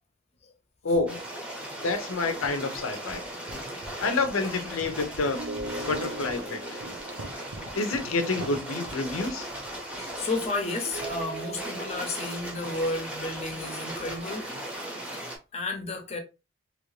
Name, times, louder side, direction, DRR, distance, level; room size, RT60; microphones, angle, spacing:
voice 1, 0.8-1.2 1.8-3.2 4.0-5.4 5.9-6.8 7.8-9.5, left 3 dB, 80° left, 0.6 m, -28 dB
sound 1, 1.1-15.4, right 1 dB, 5° right, 0.7 m, -38 dB
sound 2, 1.8-3.3 5.3-8.5 10.9-12.2, right 2 dB, 50° right, 0.6 m, -41 dB
sound 3, 1.9-10.1, right 2 dB, 90° right, 0.7 m, -46 dB
voice 2, 10.0-14.5 15.5-16.2, left 2 dB, 30° left, 0.6 m, -32 dB
3.1 x 2.5 x 3.1 m
head